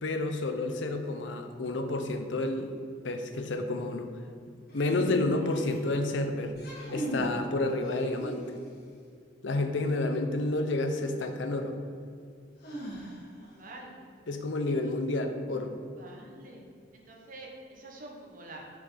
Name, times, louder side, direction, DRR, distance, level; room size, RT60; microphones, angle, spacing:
voice 1, 0.0-2.7 3.0-4.1 4.7-6.5 6.9-8.5 9.4-11.8 14.3-15.8, left 2 dB, 70° left, 6 dB, 0.7 m, -30 dB
sound 1, 4.7-5.9 6.5-7.4 7.8-8.7 10.7-10.8 12.6-13.5, right 1 dB, 55° left, 1.5 m, -38 dB
voice 2, 13.3-13.9 16.0-16.6 16.9-17.5 17.8-18.6, right 2 dB, 45° right, 0 dB, 1.1 m, -47 dB
6.0 x 4.1 x 5.7 m, 2.3 s
head